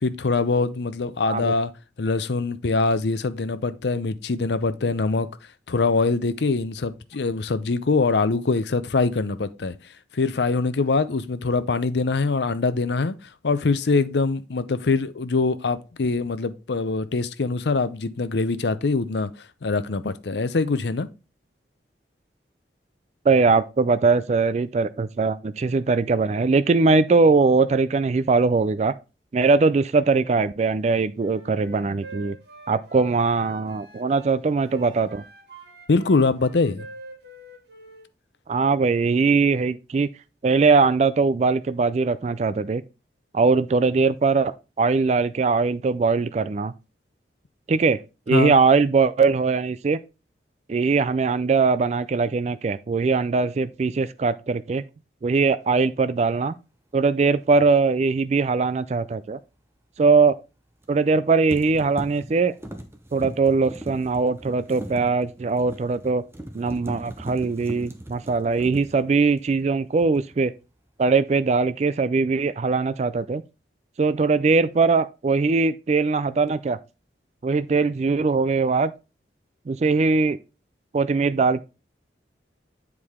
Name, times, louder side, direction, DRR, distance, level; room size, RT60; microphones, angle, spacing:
voice 1, 0.0-1.7 2.0-5.3 5.7-9.8 10.1-13.1 13.4-19.3 19.6-21.1 35.9-36.9 48.3-48.5, left 3 dB, 75° left, 0.6 m, -23 dB
voice 2, 23.3-28.9 29.3-32.4 32.7-35.2 38.5-40.1 40.4-42.8 43.3-46.7 47.7-48.0 48.3-50.0 50.7-54.8 55.2-56.5 56.9-59.4 60.0-60.4 60.9-62.5 63.1-66.2 66.5-70.5 71.0-73.4 74.0-76.8 77.4-78.9 79.7-80.4 80.9-81.6, right 4 dB, 40° right, 0.3 m, -21 dB
Wind instrument woodwind instrument, 31.1-34.3 34.7-38.1, right 2 dB, 70° right, 2.7 m, -45 dB
sound 1, 57.5-57.7 60.8-61.2 61.5-69.7 70.0-70.4, right 1 dB, 15° right, 0.8 m, -39 dB
8.4 x 4.8 x 3.6 m
head